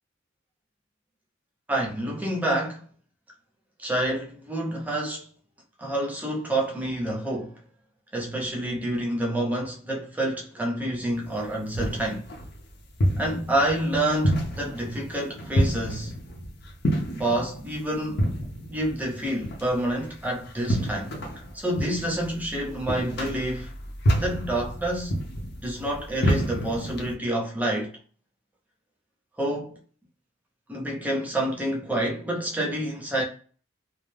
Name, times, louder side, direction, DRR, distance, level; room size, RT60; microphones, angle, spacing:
voice 1, 1.7-2.8 3.8-5.3 5.8-7.5 8.1-12.3 13.2-16.1 17.2-18.3 18.7-21.1 21.5-23.7 24.2-25.1 25.6-27.9 29.4-29.8 30.7-33.2, right 1 dB, 10° right, 0.6 m, -28 dB
sound 1, 11.2-27.1, equal, 55° left, 0.6 m, -29 dB
2.4 x 2.1 x 3.3 m
head